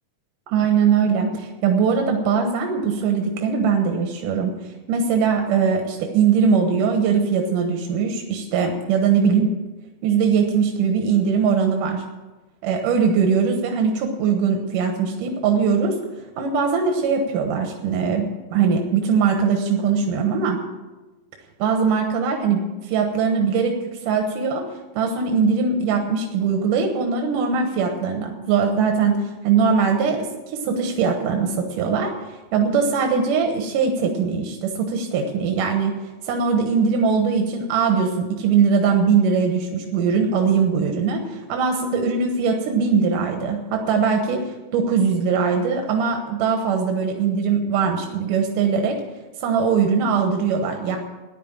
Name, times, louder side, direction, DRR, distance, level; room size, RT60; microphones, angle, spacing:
voice 1, 0.5-9.5 10.0-12.0 12.6-16.0 16.4-20.6 21.6-23.8 24.1-24.6 24.9-32.1 32.5-35.9 36.2-49.0 49.4-51.0, right 6 dB, 85° right, 3 dB, 2.9 m, -21 dB
14.5 x 10.5 x 7.3 m, 1.1 s
omnidirectional pair, 3.6 m